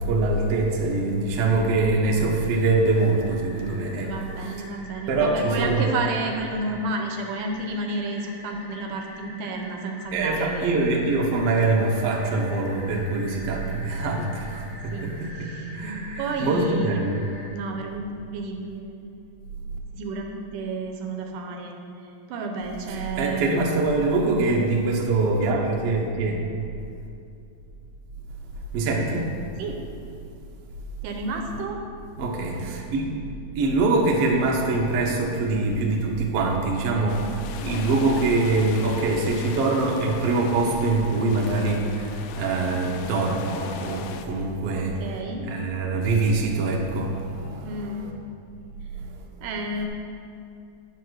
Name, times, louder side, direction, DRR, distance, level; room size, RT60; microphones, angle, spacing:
voice 1, 0.0-4.1 5.1-5.9 10.1-15.5 15.7-17.4 22.9-26.4 28.7-29.3 32.2-33.1 33.5-45.2 45.5-48.1 48.9-49.2, right 3 dB, 65° right, 0 dB, 1.6 m, -24 dB
sound 1, 2.0-17.5, left 1 dB, 20° right, 1.4 m, -45 dB
voice 2, 4.0-10.8 14.9-15.8 16.2-19.2 19.9-21.8 22.0-23.6 29.6-29.8 31.0-31.8 42.7-43.1 44.8-45.5 47.6-48.3 49.4-49.9, right 2 dB, 80° right, 2 dB, 2.3 m, -31 dB
sound 2, 37.1-44.2, left 7 dB, 80° left, 2.2 m, -39 dB
9.5 x 5.6 x 6.3 m, 2.5 s
omnidirectional pair, 3.9 m